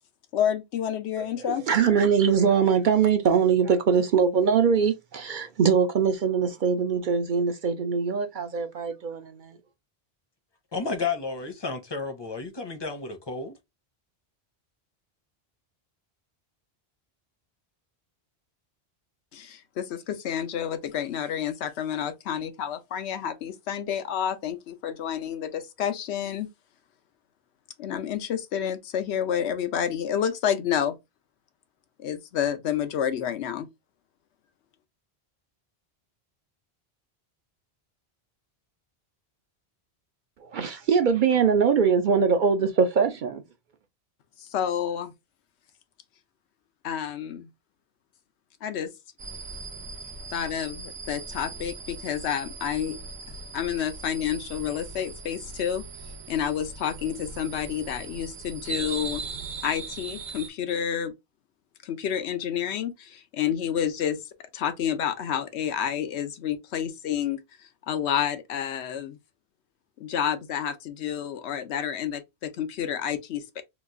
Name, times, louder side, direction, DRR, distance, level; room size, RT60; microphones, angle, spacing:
voice 1, 0.3-1.6 19.3-26.5 27.8-31.0 32.0-33.7 44.5-45.1 46.8-47.5 48.6-48.9 50.3-53.0 53.5-55.8 56.3-59.2 59.6-61.1 61.8-64.2 64.5-67.4 67.9-69.2 70.0-73.6, left 9 dB, 90° left, 0.9 m, -29 dB
voice 2, 1.2-9.6 40.4-43.4, right 6 dB, 60° right, 0.6 m, -22 dB
voice 3, 10.7-13.6, left 4 dB, 30° left, 0.6 m, -32 dB
sound 1, 49.2-60.5, right 4 dB, 80° right, 1.1 m, -39 dB
3.0 x 2.3 x 3.5 m
omnidirectional pair, 1.1 m